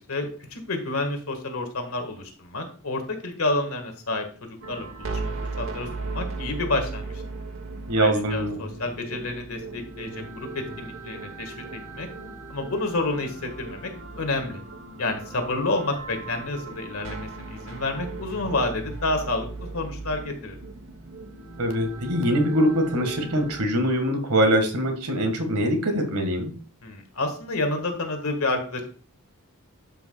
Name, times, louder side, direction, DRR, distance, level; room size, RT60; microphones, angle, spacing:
voice 1, 0.0-4.3 4.7-7.2 8.0-11.5 11.9-12.1 12.5-13.9 14.2-14.6 15.0-20.6 26.8-28.8, left 2 dB, 70° left, 5 dB, 1.6 m, -29 dB
sound 1, 4.6-23.6, right 3 dB, 60° right, 1.0 m, -37 dB
voice 2, 7.9-8.6 21.6-26.5, equal, 80° right, 5 dB, 1.8 m, -23 dB
12.0 x 5.7 x 2.3 m, 0.42 s
head